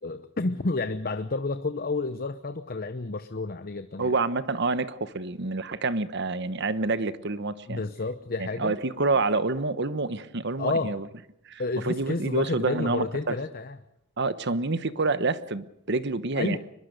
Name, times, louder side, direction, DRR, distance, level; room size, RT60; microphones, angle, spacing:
voice 1, 0.0-4.1 7.7-8.8 10.6-11.0 11.6-13.8 16.4-16.6, left 3 dB, 45° left, 10 dB, 0.8 m, -30 dB
voice 2, 4.0-7.8 8.4-11.1 11.5-13.4 14.2-16.6, right 3 dB, 55° right, 13 dB, 1.1 m, -28 dB
23.5 x 21.5 x 6.7 m, 0.80 s
head